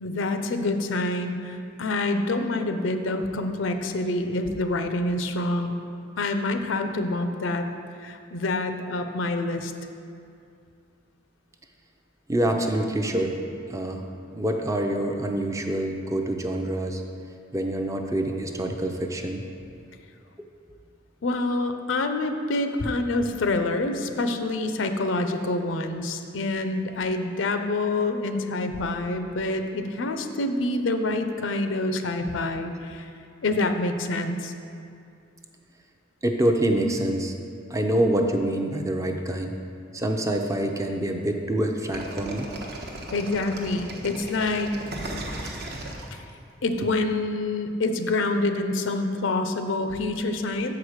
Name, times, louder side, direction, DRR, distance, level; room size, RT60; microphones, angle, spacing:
voice 1, 0.0-5.8 6.2-7.6 8.0-9.7 21.2-33.0 33.4-34.5 43.1-44.8 46.1-46.2 46.6-50.8, left 2 dB, 75° left, 7 dB, 0.6 m, -27 dB
voice 2, 12.3-13.3 13.7-14.0 14.3-17.0 17.5-19.4 36.2-37.3 37.7-39.5 39.9-42.5, right 1 dB, 15° right, 3 dB, 0.5 m, -26 dB
sound 1, 41.9-46.7, right 1 dB, 55° right, 0.9 m, -36 dB
6.7 x 4.8 x 6.4 m, 2.4 s
head